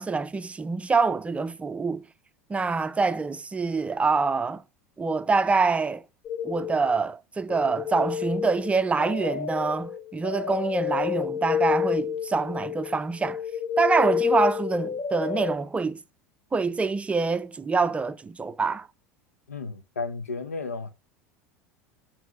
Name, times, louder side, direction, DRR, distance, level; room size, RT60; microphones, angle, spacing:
voice 1, 0.0-2.0 2.5-4.6 5.0-6.0 6.4-13.4 13.8-16.0 16.5-18.9, right 4 dB, 15° right, 0.5 m, -25 dB
sound 1, 6.3-7.0 7.5-15.6, left 8 dB, 40° left, 1.0 m, -29 dB
voice 2, 19.5-20.9, left 4 dB, 85° left, 0.9 m, -33 dB
9.1 x 3.2 x 5.3 m
figure-of-eight pair, 80°, 8 cm